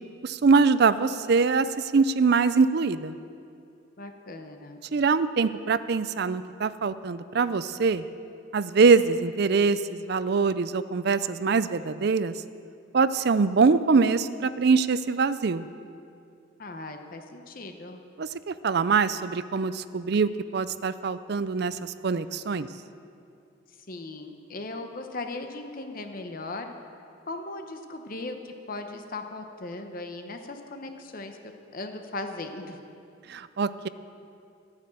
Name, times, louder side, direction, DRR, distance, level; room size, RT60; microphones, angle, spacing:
voice 1, 0.2-3.2 4.9-8.0 8.5-12.3 12.9-15.7 18.2-22.7 33.3-33.9, right 4 dB, 55° right, 14 dB, 0.5 m, -23 dB
voice 2, 4.0-4.8 16.6-18.0 23.9-26.7 27.3-31.4 31.7-32.8, left 2 dB, 45° left, 5 dB, 1.0 m, -38 dB
13.5 x 9.7 x 7.6 m, 2.5 s
head